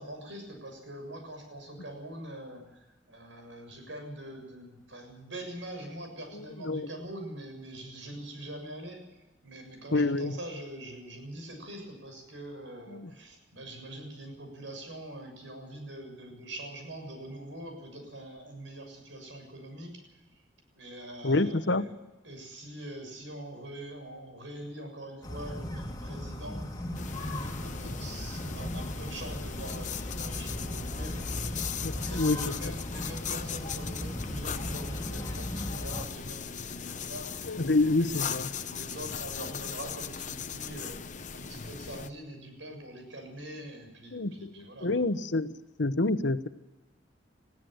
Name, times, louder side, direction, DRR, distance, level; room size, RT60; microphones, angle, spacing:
voice 1, 0.0-9.0 9.4-20.0 20.7-21.9 22.2-26.9 27.1-41.0 41.3-45.0, right 1 dB, 85° right, 4 dB, 7.1 m, -43 dB
voice 2, 9.9-10.3 12.9-13.1 21.2-21.8 31.8-32.4 37.5-38.5 44.1-45.5 45.8-46.5, left 2 dB, 70° left, 12 dB, 1.0 m, -27 dB
sound 1, 25.2-36.0, left 1 dB, 20° left, 2.0 m, -37 dB
sound 2, 26.9-42.1, left 7 dB, 40° left, 0.9 m, -38 dB
21.0 x 16.0 x 7.9 m, 1.1 s
head